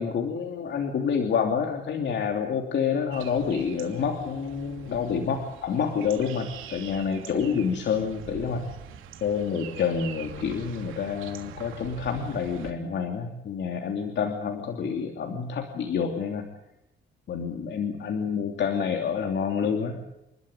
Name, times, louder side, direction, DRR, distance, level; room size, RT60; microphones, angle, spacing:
voice 1, 0.0-8.7 9.2-16.4 17.3-20.0, left 6 dB, 65° left, 3 dB, 2.8 m, -28 dB
sound 1, 3.1-12.7, right 9 dB, 90° right, 2.8 m, -44 dB
29.5 x 12.5 x 9.5 m, 0.85 s
cardioid pair, 90°, 20 cm